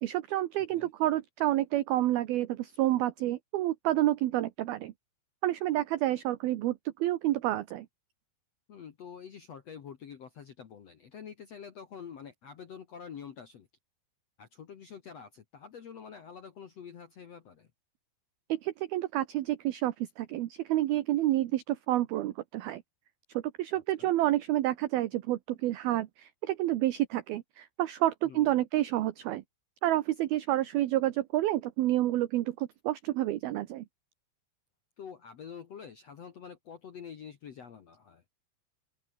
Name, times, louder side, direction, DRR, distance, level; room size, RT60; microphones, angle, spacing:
voice 1, 0.0-4.9 5.4-7.9 18.5-22.8 23.3-29.4 29.8-33.8, right 14 dB, 70° right, 2.5 m, -29 dB
voice 2, 8.7-13.7 14.4-17.7 23.7-24.1 28.2-28.6 35.0-38.3, left 7 dB, 65° left, 1.6 m, -47 dB
open air
omnidirectional pair, 5.4 m